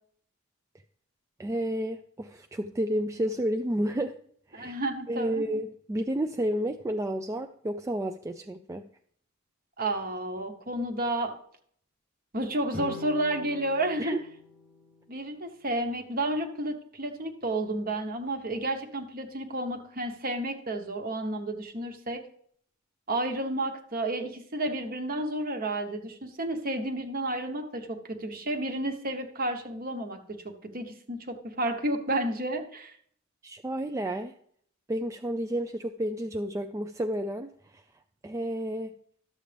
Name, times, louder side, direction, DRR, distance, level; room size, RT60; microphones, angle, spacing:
voice 1, 1.4-4.1 4.5-4.7 5.1-8.9 14.0-14.2 33.4-34.4 34.9-37.5 38.2-38.9, right 1 dB, 15° right, 6 dB, 0.3 m, -31 dB
voice 2, 4.5-5.4 9.8-11.3 12.3-14.2 15.1-22.2 23.1-30.2 30.4-32.9, right 1 dB, 45° right, 6 dB, 1.0 m, -31 dB
sound 1, 12.7-16.0, left 4 dB, 10° left, 0.8 m, -45 dB
12.5 x 7.3 x 3.4 m, 0.63 s
head